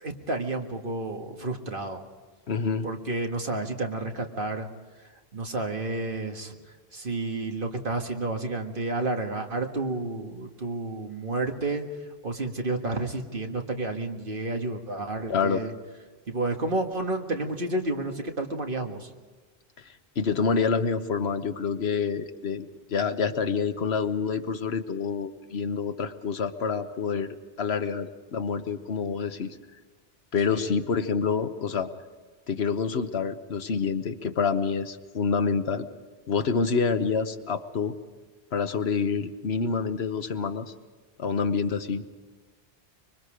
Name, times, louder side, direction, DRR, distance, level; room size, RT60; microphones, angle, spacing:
voice 1, 0.0-2.0 2.8-4.7 5.3-6.5 6.9-11.8 12.2-15.7 16.3-19.1 30.5-30.7, right 2 dB, 60° right, 3 dB, 1.9 m, -30 dB
voice 2, 2.5-2.9 15.3-15.6 20.2-29.6 30.3-31.9 32.5-35.9 36.3-37.9 38.5-40.7 41.2-42.0, left 5 dB, 80° left, 9 dB, 1.3 m, -27 dB
25.0 x 23.5 x 5.0 m, 1.3 s
omnidirectional pair, 1.1 m